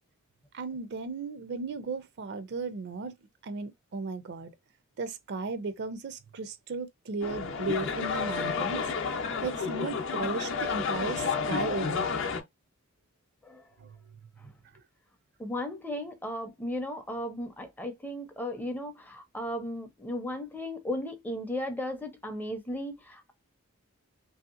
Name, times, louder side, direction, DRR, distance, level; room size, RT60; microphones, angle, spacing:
voice 1, 0.5-3.1 3.4-4.5 5.0-8.9 9.4-12.2 13.8-14.0, right 4 dB, 55° right, 0.4 m, -35 dB
sound 1, 7.2-12.4, left 5 dB, 65° left, 0.6 m, -31 dB
voice 2, 13.4-13.7 14.4-14.5 15.4-23.3, left 1 dB, 10° left, 0.5 m, -36 dB
3.1 x 2.7 x 2.4 m
head